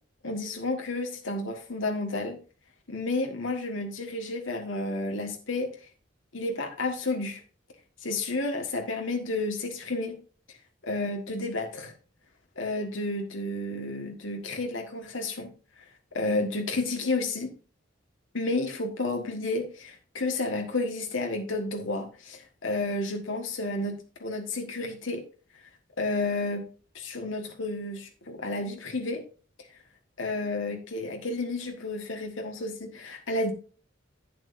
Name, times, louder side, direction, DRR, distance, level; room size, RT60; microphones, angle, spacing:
voice 1, 0.2-2.4 2.9-5.7 6.3-7.4 8.0-10.2 10.8-11.9 12.6-15.5 16.1-17.5 18.3-25.2 26.0-26.7 26.9-29.2 30.2-33.5, left 2 dB, 80° left, 3 dB, 1.6 m, -31 dB
10.5 x 8.9 x 2.6 m, 0.37 s
head